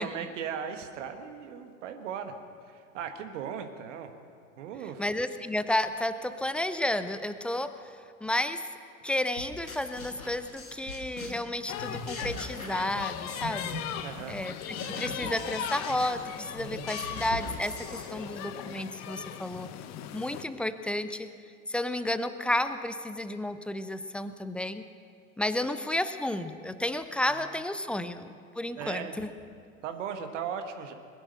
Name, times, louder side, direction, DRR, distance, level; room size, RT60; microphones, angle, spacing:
voice 1, 0.0-2.4 2.7-4.1 4.6-5.0 14.0-14.4 27.9-28.3 28.7-29.1 29.8-30.9, right 7 dB, 60° right, 7 dB, 1.5 m, -37 dB
voice 2, 5.0-7.8 8.2-8.6 9.0-13.8 14.3-19.7 20.1-21.3 21.7-24.9 25.4-29.3, left 1 dB, 5° left, 11 dB, 0.3 m, -32 dB
sound 1, 9.4-11.5 11.8-13.9 14.2-18.5, left 1 dB, 90° left, 1.9 m, -41 dB
sound 2, 11.7-20.4, left 10 dB, 40° left, 1.0 m, -39 dB
21.5 x 10.0 x 6.7 m, 2.2 s
figure-of-eight pair, 80°, 41 cm